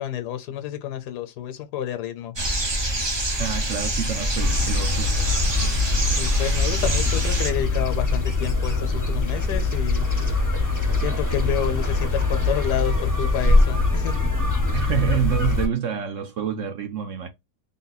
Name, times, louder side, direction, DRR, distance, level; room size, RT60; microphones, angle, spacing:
voice 1, 0.0-2.3 6.2-10.1 11.0-14.3, left 10 dB, 80° left, 1.3 m, -29 dB
sound 1, 2.4-7.5, right 1 dB, 30° right, 0.4 m, -25 dB
voice 2, 3.4-5.1 14.7-17.3, right 9 dB, 65° right, 0.8 m, -27 dB
sound 2, 4.4-15.7, left 3 dB, 20° left, 0.6 m, -23 dB
3.7 x 2.2 x 4.0 m
omnidirectional pair, 1.8 m